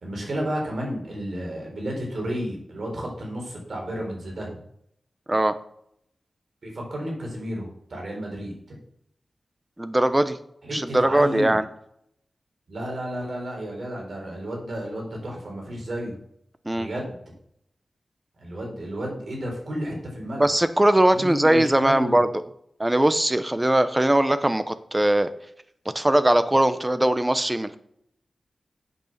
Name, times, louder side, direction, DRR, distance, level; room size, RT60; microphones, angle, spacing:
voice 1, 0.0-4.6 6.6-8.8 10.6-11.6 12.7-16.2 16.7-17.2 18.4-20.5 21.1-22.2, equal, 60° right, -1 dB, 3.9 m, -32 dB
voice 2, 9.8-10.4 10.7-11.6 16.7-16.9 20.4-22.3 22.8-25.3 25.9-27.8, right 1 dB, 15° right, 11 dB, 0.7 m, -20 dB
8.1 x 6.8 x 6.6 m, 0.71 s
wide cardioid pair, 130°, 0 cm